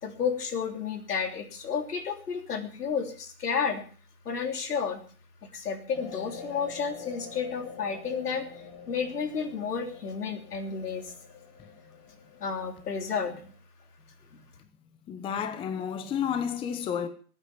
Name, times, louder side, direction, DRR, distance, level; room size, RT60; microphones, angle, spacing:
voice 1, 0.0-3.8 4.2-5.0 5.5-8.4 8.9-11.1 12.4-13.4, left 6 dB, 80° left, 3.4 m, -31 dB
sound 1, 5.9-13.5, left 6 dB, 35° left, 7.0 m, -47 dB
voice 2, 15.1-17.1, left 8 dB, 10° left, 0.8 m, -31 dB
20.5 x 8.9 x 5.8 m
hypercardioid pair, 145°, 46 cm